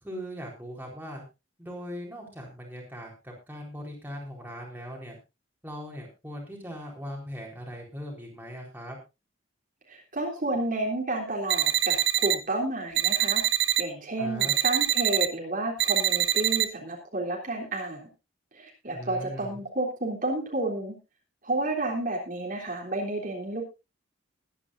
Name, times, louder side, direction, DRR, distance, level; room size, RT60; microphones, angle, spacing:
voice 1, 0.0-1.2 1.6-5.2 5.6-9.0 14.2-14.6 18.9-19.6, equal, 10° right, -1 dB, 4.2 m, -40 dB
voice 2, 9.9-13.4 13.8-18.1 18.5-21.0 21.4-23.6, right 2 dB, 40° right, -1 dB, 3.5 m, -31 dB
sound 1, 11.5-12.4 13.0-13.8 14.4-15.3 15.8-16.7, right 13 dB, 65° right, 0.9 m, -24 dB
21.5 x 10.0 x 2.7 m, 0.27 s
head